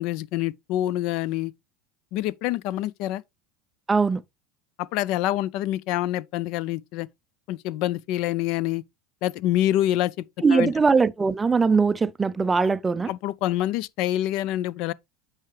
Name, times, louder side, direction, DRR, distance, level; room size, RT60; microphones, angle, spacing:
voice 1, 0.0-1.5 2.1-3.2 4.8-7.1 7.5-8.8 9.2-10.2 10.5-10.7 13.1-14.9, left 14 dB, 60° left, 0.4 m, -26 dB
voice 2, 3.9-4.2 10.4-13.1, right 4 dB, 15° right, 0.4 m, -21 dB
8.4 x 4.8 x 3.2 m
supercardioid pair, 135°, 0 cm